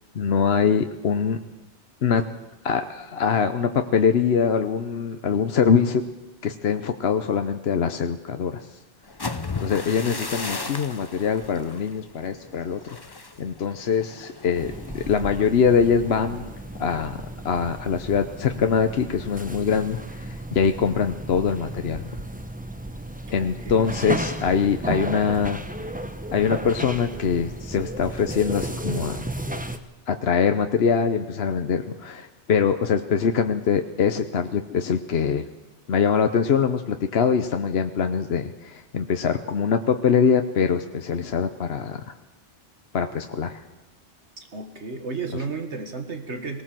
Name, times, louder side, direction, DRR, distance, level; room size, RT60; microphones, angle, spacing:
voice 1, 0.1-1.4 2.0-2.3 2.6-6.0 6.4-8.7 9.6-13.0 13.4-16.4 16.8-17.2 17.4-22.1 23.3-25.6 26.3-29.3 30.1-35.5 35.9-42.1 42.9-43.6, left 6 dB, 60° left, 7 dB, 1.1 m, -23 dB
sound 1, 9.0-16.9 17.3-17.6 17.9-18.3, left 3 dB, 20° left, 0.9 m, -37 dB
sound 2, 14.5-29.8, right 1 dB, 10° right, 0.9 m, -34 dB
voice 2, 23.4-23.9 44.4-46.6, right 4 dB, 70° right, 6 dB, 2.0 m, -33 dB
19.5 x 18.5 x 7.6 m, 1.1 s
omnidirectional pair, 1.2 m